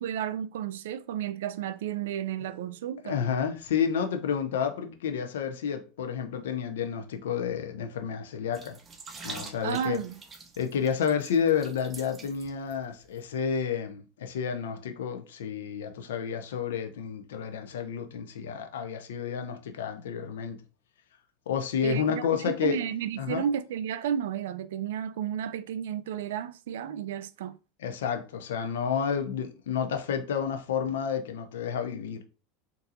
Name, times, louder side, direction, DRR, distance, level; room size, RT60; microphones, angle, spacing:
voice 1, 0.0-3.2 9.6-10.2 21.8-27.6, right 9 dB, 75° right, 0.3 m, -32 dB
voice 2, 3.0-8.8 9.2-10.0 10.6-20.6 21.5-22.8 23.2-23.4 27.8-32.2, left 7 dB, 80° left, 0.5 m, -30 dB
sound 1, 8.5-12.8 13.1-13.2, right 4 dB, 25° right, 0.6 m, -45 dB
3.9 x 2.6 x 2.5 m
hypercardioid pair, 90°, 0 cm